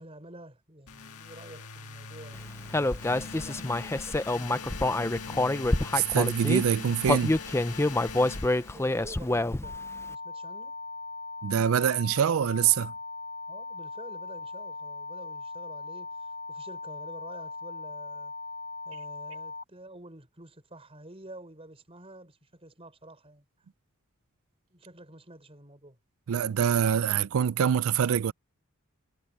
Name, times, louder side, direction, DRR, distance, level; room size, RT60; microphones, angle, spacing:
voice 1, 0.0-5.5 8.6-10.8 13.5-18.3 18.9-23.5 24.7-26.0, right 1 dB, 25° right, 5.4 m, -49 dB
sound 1, 0.9-9.2, left 5 dB, 90° left, 1.7 m, -42 dB
Human voice, 2.7-6.6 7.0-9.8, left 2 dB, 10° left, 0.5 m, -27 dB
voice 2, 5.9-7.4 11.4-12.9 26.3-28.3, right 8 dB, 70° right, 0.4 m, -25 dB
sound 2, 9.6-19.6, left 4 dB, 45° right, 2.5 m, -39 dB
head